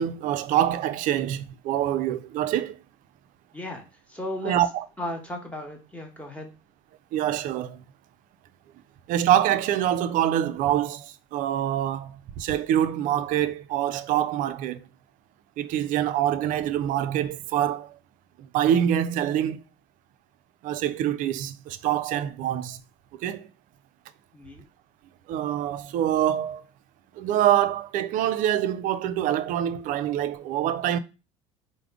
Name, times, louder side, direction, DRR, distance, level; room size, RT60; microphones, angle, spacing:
voice 1, 0.0-2.8 4.4-4.8 7.1-7.8 9.1-14.8 15.6-18.0 18.4-19.6 20.6-22.8 23.2-23.5 25.3-26.6 27.2-31.0, right 11 dB, 55° right, 0.4 m, -25 dB
voice 2, 4.1-4.5 5.0-6.5 24.3-24.6, left 1 dB, 10° left, 1.2 m, -35 dB
3.4 x 2.0 x 3.5 m
hypercardioid pair, 75°, 16 cm